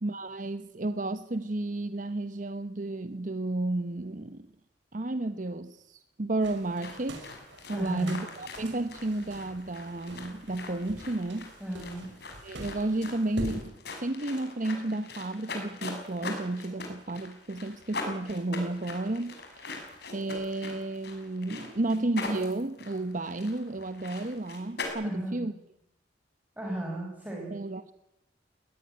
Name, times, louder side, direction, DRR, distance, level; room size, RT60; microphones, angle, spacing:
voice 1, 0.0-4.5 4.9-7.3 7.7-11.5 12.4-13.8 14.0-19.7 20.1-25.5 27.5-27.9, right 2 dB, 45° right, 11 dB, 0.9 m, -32 dB
sound 1, 6.4-13.6, right 1 dB, 80° right, 5.7 m, -44 dB
sound 2, 6.8-24.9, left 3 dB, 60° left, 6.0 m, -42 dB
voice 2, 7.7-8.2 11.6-12.1 25.0-25.4 26.6-27.5, right 1 dB, 10° right, -2 dB, 4.9 m, -35 dB
20.5 x 18.5 x 9.9 m, 0.86 s
head